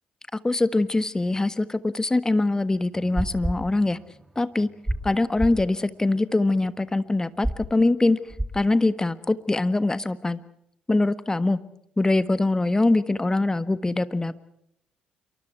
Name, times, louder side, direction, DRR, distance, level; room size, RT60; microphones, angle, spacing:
voice 1, 0.3-4.0 4.3-4.7 5.0-8.2 8.5-10.4 10.9-11.6 12.0-14.3, left 2 dB, 20° left, 14 dB, 1.5 m, -23 dB
sound 1, 2.9-4.4 4.6-5.1 5.4-5.6 7.4-7.6 8.3-8.6, right 1 dB, 10° right, 2.0 m, -30 dB
27.5 x 24.0 x 4.6 m, 0.74 s
hypercardioid pair, 45°, 4 cm